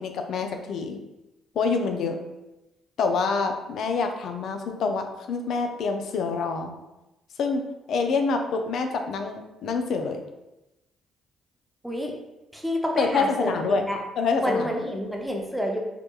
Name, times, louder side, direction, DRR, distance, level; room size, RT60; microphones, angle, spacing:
voice 1, 0.0-1.0 1.6-2.2 3.0-6.7 7.4-10.2 13.0-13.8 14.2-14.7, left 4 dB, 65° left, 5 dB, 0.3 m, -26 dB
voice 2, 12.5-14.0 14.4-15.8, equal, 5° right, 1 dB, 0.5 m, -28 dB
2.8 x 2.2 x 2.3 m, 0.97 s
hypercardioid pair, 50°, 0 cm